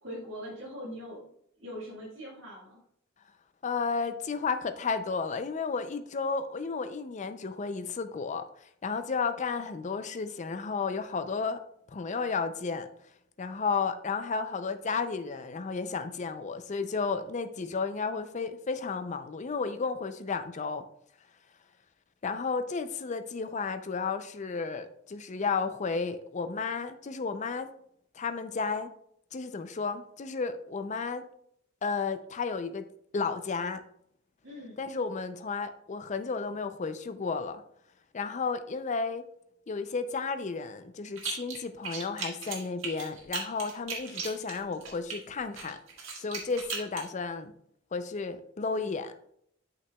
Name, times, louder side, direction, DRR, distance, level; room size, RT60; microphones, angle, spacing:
voice 1, 0.0-1.3 1.6-2.8 34.4-34.8, equal, 70° right, -6 dB, 1.8 m, -41 dB
voice 2, 3.6-11.6 11.9-12.9 13.4-20.9 22.2-27.7 28.1-28.9 29.3-31.2 31.8-32.9 33.1-33.8 34.8-37.6 38.1-39.2 39.7-45.8 46.2-47.5 47.9-49.3, left 4 dB, 35° left, 10 dB, 0.4 m, -33 dB
sound 1, 41.2-41.6 41.8-45.2 45.6-47.1, right 5 dB, 90° right, 1.7 m, -37 dB
7.9 x 5.8 x 2.3 m, 0.70 s
head